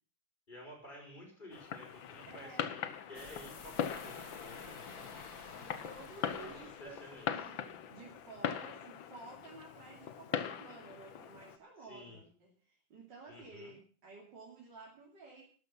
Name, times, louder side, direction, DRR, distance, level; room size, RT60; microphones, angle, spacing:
voice 1, 0.5-4.9 6.2-7.5 11.8-12.2 13.3-13.7, left 1 dB, 25° left, 0 dB, 5.8 m, -52 dB
Fireworks, 1.5-11.6, left 9 dB, 75° left, 1.8 m, -41 dB
voice 2, 2.3-2.7 5.8-15.5, right 3 dB, 65° right, -2 dB, 3.5 m, -53 dB
sound 1, 3.1-7.6, left 4 dB, 50° left, 2.0 m, -51 dB
13.0 x 12.0 x 5.6 m, 0.43 s
omnidirectional pair, 2.1 m